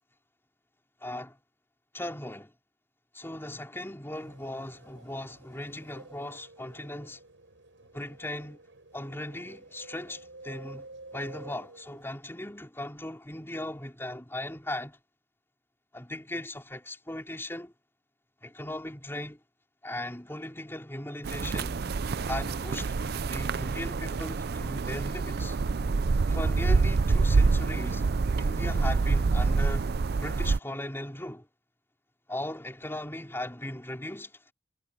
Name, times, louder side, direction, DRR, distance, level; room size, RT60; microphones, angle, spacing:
voice 1, 1.0-1.4 1.9-2.5 3.1-7.2 7.9-8.6 8.9-10.9 11.1-15.0 15.9-17.7 18.4-19.4 19.8-21.8 22.3-25.6 26.3-28.0 28.4-29.9 30.2-31.5 32.3-34.3, left 1 dB, 15° left, 3.6 m, -38 dB
sound 1, 4.1-12.1, right 2 dB, 80° right, 6.7 m, -51 dB
sound 2, 21.2-30.6, right 4 dB, 55° right, 0.5 m, -26 dB
head